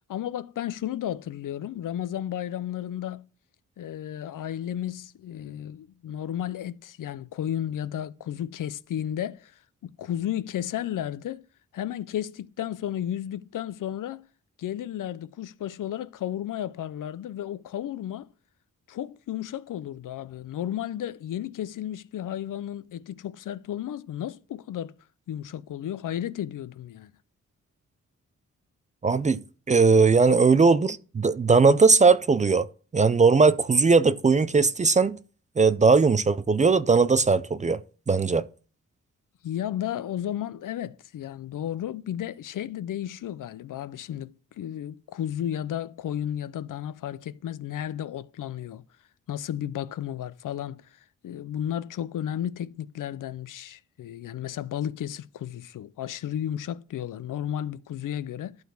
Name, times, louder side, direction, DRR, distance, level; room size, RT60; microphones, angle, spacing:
voice 1, 0.1-3.3 3.8-9.5 9.8-11.5 11.7-14.3 14.6-18.3 18.9-24.9 25.3-27.1 39.4-48.8 49.3-50.9 51.2-58.6, left 11 dB, 80° left, 0.6 m, -33 dB
voice 2, 29.0-29.4 29.7-32.7 32.9-35.2 35.6-37.8 38.1-38.4, right 4 dB, 25° right, 0.3 m, -19 dB
11.5 x 4.0 x 6.9 m
wide cardioid pair, 170°, 31 cm